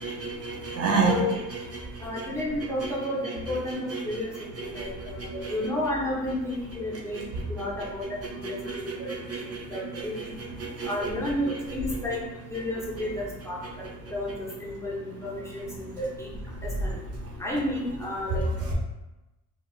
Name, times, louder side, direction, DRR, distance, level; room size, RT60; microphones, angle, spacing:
voice 1, 0.0-2.3 2.8-2.9 3.2-5.6 7.1-11.1 11.5-11.6 13.6-14.0 15.7-16.0 16.5-17.4, right 3 dB, 50° right, -1 dB, 0.6 m, -32 dB
voice 2, 1.1-1.4 2.0-4.3 4.6-7.2 7.5-8.1 8.4-9.1 9.4-10.3 10.8-12.2 12.5-13.8 14.1-16.3 16.6-17.0 17.4-18.4, left 1 dB, 10° left, -5 dB, 0.8 m, -32 dB
3.3 x 2.4 x 2.4 m, 1.0 s
cardioid pair, 90°, 30 cm